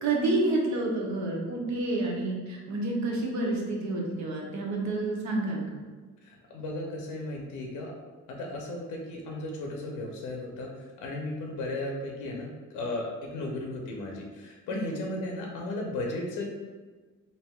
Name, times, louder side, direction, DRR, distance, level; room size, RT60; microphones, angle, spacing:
voice 1, 0.0-5.8 14.9-15.0, right 2 dB, 65° right, -1 dB, 0.7 m, -29 dB
voice 2, 6.2-7.9 8.3-16.5, left 2 dB, 90° left, 0 dB, 0.6 m, -35 dB
3.3 x 2.6 x 2.2 m, 1.4 s
cardioid pair, 90°, 30 cm